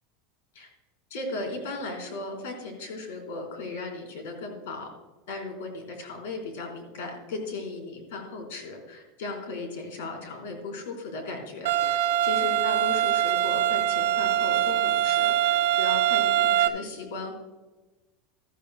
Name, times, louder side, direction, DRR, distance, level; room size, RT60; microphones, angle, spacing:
voice 1, 1.1-4.9 5.3-17.3, left 3 dB, 80° left, 2 dB, 3.9 m, -36 dB
sound 1, 11.7-16.7, right 11 dB, 65° right, 0.8 m, -23 dB
14.5 x 13.5 x 2.2 m, 1.2 s
supercardioid pair, 180°, 0 cm